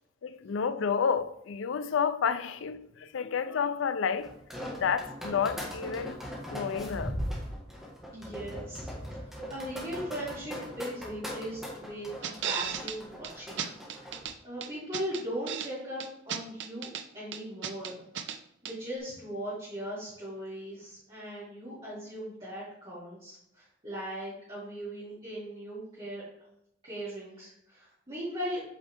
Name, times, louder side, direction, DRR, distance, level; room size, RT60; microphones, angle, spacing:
voice 1, 0.2-4.3 4.8-6.2 6.5-7.2, left 6 dB, 80° left, 0.4 m, -30 dB
sound 1, 4.2-14.3, equal, ahead, 1.5 m, -39 dB
voice 2, 8.1-13.6 14.1-18.0 18.6-26.2 26.8-28.6, equal, 30° right, 2.6 m, -39 dB
sound 2, 12.2-13.0 13.2-13.3 13.6-14.3 14.6-15.7 16.0-17.0 17.3-18.4 18.6-18.7, right 8 dB, 65° right, 0.5 m, -35 dB
8.2 x 4.4 x 3.4 m
head